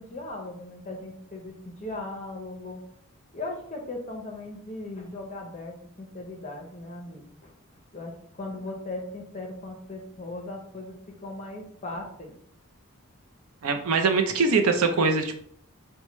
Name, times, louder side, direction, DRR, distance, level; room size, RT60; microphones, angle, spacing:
voice 1, 0.0-2.8 3.3-7.5 7.9-11.0 11.2-12.3, left 2 dB, 30° left, 1 dB, 0.7 m, -38 dB
voice 2, 13.6-15.4, right 4 dB, 75° right, 6 dB, 0.5 m, -23 dB
4.6 x 2.2 x 3.0 m, 0.62 s
head